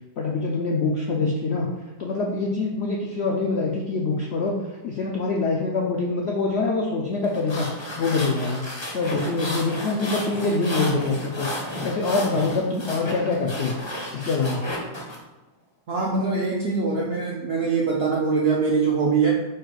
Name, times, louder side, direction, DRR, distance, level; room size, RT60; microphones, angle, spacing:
voice 1, 0.2-1.7 2.0-4.6 4.8-7.7 8.0-8.6 8.9-11.5 11.8-13.8 14.1-14.6, left 3 dB, 75° left, -1 dB, 0.6 m, -24 dB
sound 1, 7.2-15.2, left 1 dB, 30° left, 0.5 m, -33 dB
voice 2, 15.9-19.3, right 4 dB, 70° right, -2 dB, 0.5 m, -23 dB
4.5 x 2.4 x 4.6 m, 1.1 s
omnidirectional pair, 1.7 m